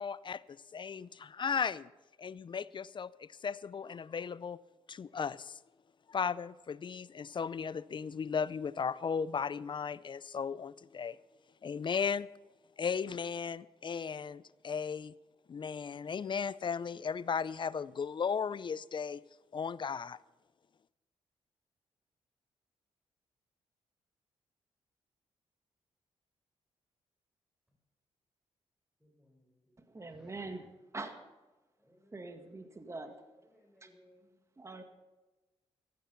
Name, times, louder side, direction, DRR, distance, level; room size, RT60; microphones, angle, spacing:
voice 1, 0.0-1.9 2.2-4.6 4.9-5.6 6.1-11.2 11.6-12.3 12.8-15.1 15.5-19.2 19.5-20.2, left 6 dB, 45° left, 0.5 m, -36 dB
voice 2, 29.0-30.7 31.8-34.4, equal, 5° right, 4.4 m, -65 dB
voice 3, 29.8-30.7 30.9-31.3 32.1-33.1 33.8-33.9 34.6-34.8, right 3 dB, 25° right, 2.0 m, -44 dB
15.0 x 13.5 x 5.7 m
cardioid pair, 65°, 11 cm